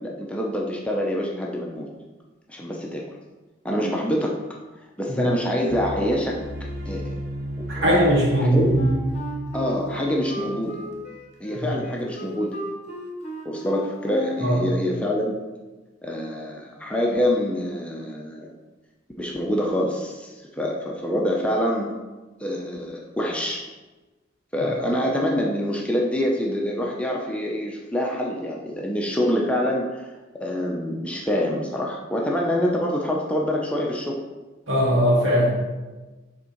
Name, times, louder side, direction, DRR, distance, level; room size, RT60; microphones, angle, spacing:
voice 1, 0.0-1.9 2.5-3.0 3.6-4.4 5.0-6.4 6.9-7.1 7.6-8.1 8.4-8.9 9.5-10.8 11.4-12.6 13.4-15.4 16.0-18.5 19.2-21.9 22.4-23.6 24.5-30.1 30.4-34.2, equal, 5° left, -2 dB, 0.6 m, -26 dB
sound 1, 5.7-11.0, equal, 45° right, 0.6 m, -32 dB
voice 2, 7.7-8.7 11.5-11.7 14.4-14.6 34.7-35.5, equal, 75° right, -4 dB, 2.0 m, -19 dB
Wind instrument woodwind instrument, 8.7-14.6, equal, 35° left, 1.0 m, -34 dB
6.6 x 3.6 x 4.5 m, 1.2 s
head